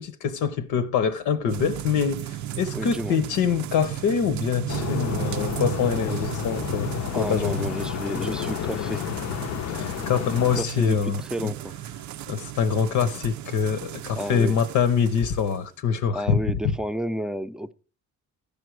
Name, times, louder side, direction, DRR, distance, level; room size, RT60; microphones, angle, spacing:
voice 1, 0.0-7.7 9.7-11.5 12.3-16.4 16.6-16.7, left 7 dB, 85° left, 0.8 m, -25 dB
sound 1, 1.5-15.6, right 12 dB, 70° right, 0.5 m, -35 dB
voice 2, 2.7-3.2 7.1-9.0 10.5-11.7 14.2-14.6 16.1-17.7, equal, ahead, 0.5 m, -31 dB
sound 2, 4.7-10.6, left 11 dB, 60° left, 0.5 m, -31 dB
13.5 x 5.2 x 4.6 m
cardioid pair, 90°, 30 cm